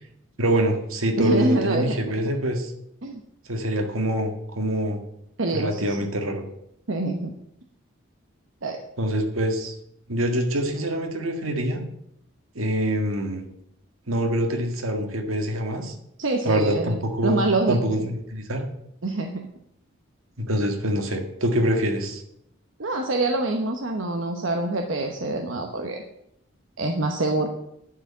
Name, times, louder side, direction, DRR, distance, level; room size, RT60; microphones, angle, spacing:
voice 1, 0.4-2.7 3.5-5.0 5.5-6.4 9.0-9.7 10.1-11.8 12.6-13.5 14.1-15.9 16.4-18.6 20.4-22.2, equal, 85° right, 4 dB, 1.8 m, -25 dB
voice 2, 1.2-2.3 3.0-3.2 5.4-6.0 6.9-7.3 8.6-8.8 16.2-18.1 19.0-19.5 22.8-26.0 26.8-27.5, right 2 dB, 65° right, 3 dB, 1.0 m, -26 dB
11.0 x 4.9 x 8.4 m, 0.76 s
head